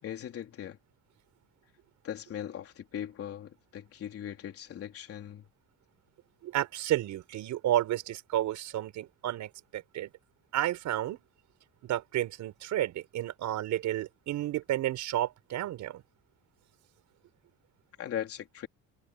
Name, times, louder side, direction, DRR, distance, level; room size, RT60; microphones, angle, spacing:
voice 1, 0.0-0.8 2.0-5.4 18.0-18.7, left 10 dB, 40° left, 3.9 m, -39 dB
voice 2, 6.4-10.1 10.5-11.2 11.8-16.0, right 13 dB, 55° right, 6.0 m, -31 dB
cardioid pair, 180°, 34 cm